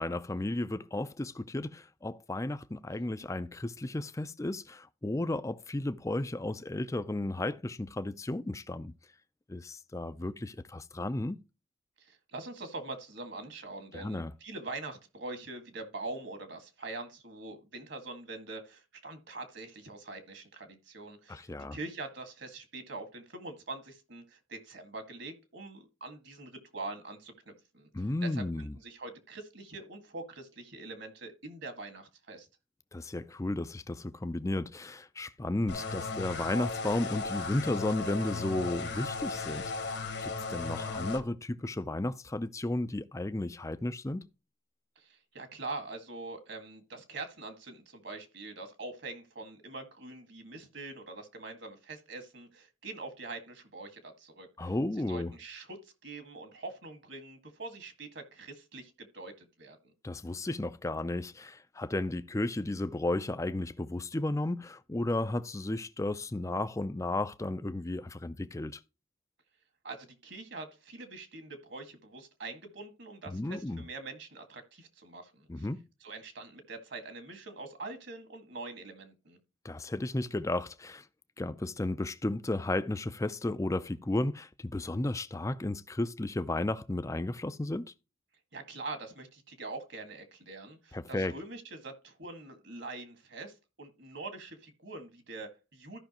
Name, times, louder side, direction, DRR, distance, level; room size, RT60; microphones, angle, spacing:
voice 1, 0.0-8.9 9.5-11.4 13.9-14.3 21.3-21.8 27.9-28.7 32.9-39.9 40.2-44.3 54.6-55.3 60.0-68.8 73.3-73.8 75.5-75.8 79.6-81.0 81.4-87.9 90.9-91.3, left 2 dB, 15° left, 0.4 m, -33 dB
voice 2, 12.0-27.9 28.2-32.5 45.0-54.7 55.1-59.8 69.8-75.7 76.0-79.4 88.5-96.0, right 3 dB, 60° right, 1.9 m, -44 dB
sound 1, 35.7-41.2, left 4 dB, 55° left, 1.1 m, -36 dB
14.0 x 5.7 x 2.9 m
head